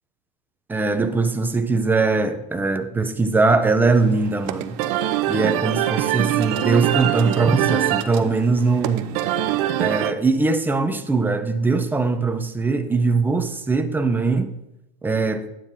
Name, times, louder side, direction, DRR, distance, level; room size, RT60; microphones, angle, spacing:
voice 1, 0.7-4.8 5.3-9.1 9.8-14.5 15.0-15.5, right 3 dB, 5° right, 0.4 m, -21 dB
sound 1, 3.9-10.1, right 12 dB, 55° right, 0.7 m, -24 dB
11.5 x 9.1 x 2.6 m
supercardioid pair, 135°, 30 cm